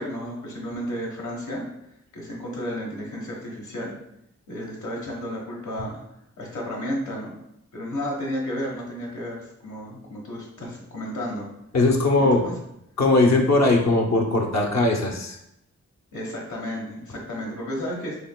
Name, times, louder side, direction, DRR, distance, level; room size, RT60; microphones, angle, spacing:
voice 1, 0.0-1.7 2.1-3.9 4.5-6.0 6.4-7.3 7.7-11.5 12.2-12.6 16.1-18.2, equal, 90° left, -2 dB, 1.2 m, -32 dB
voice 2, 11.7-12.4 13.0-15.4, left 2 dB, 65° left, 2 dB, 0.7 m, -19 dB
4.8 x 3.1 x 2.2 m, 0.80 s
cardioid pair, 70°, 29 cm